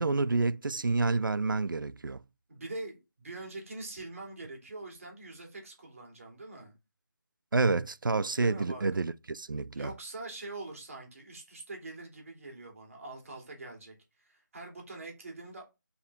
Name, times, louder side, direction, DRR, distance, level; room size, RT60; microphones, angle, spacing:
voice 1, 0.0-2.2 7.5-9.9, right 3 dB, 85° right, 0.5 m, -29 dB
voice 2, 2.5-6.7 8.4-8.8 9.7-15.6, right 2 dB, 45° right, 2.8 m, -44 dB
7.0 x 4.2 x 3.6 m
figure-of-eight pair, 170°, 11 cm